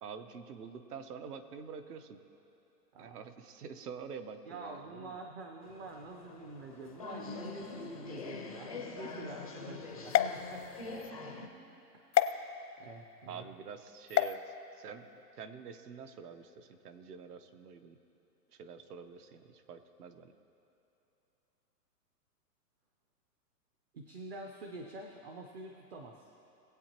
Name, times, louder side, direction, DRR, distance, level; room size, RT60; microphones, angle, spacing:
voice 1, 0.0-2.2 3.0-5.2 13.3-15.1 15.4-18.0 18.5-20.3, right 6 dB, 65° right, 9 dB, 1.0 m, -47 dB
voice 2, 4.5-10.7 11.9-12.4 12.8-13.4 23.9-26.3, right 2 dB, 40° right, 3 dB, 0.7 m, -47 dB
sound 1, 5.6-11.5, left 4 dB, 25° left, 0.4 m, -44 dB
sound 2, 10.1-11.1 12.1-12.3 14.1-14.4, left 11 dB, 90° left, 0.8 m, -29 dB
20.5 x 8.2 x 2.9 m, 3.0 s
hypercardioid pair, 160°, 49 cm